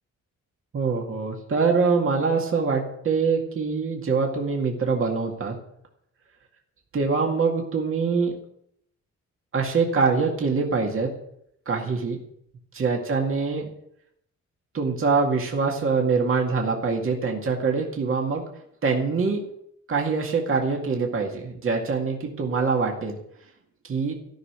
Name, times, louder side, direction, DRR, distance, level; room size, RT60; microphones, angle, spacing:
voice 1, 0.7-5.6 6.9-8.3 9.5-11.1 11.7-12.2 12.7-13.7 14.7-18.5 18.8-19.4 19.9-23.2 23.8-24.1, right 4 dB, 45° right, 1 dB, 2.1 m, -24 dB
14.5 x 6.5 x 10.0 m, 0.73 s
wide cardioid pair, 165°, 30 cm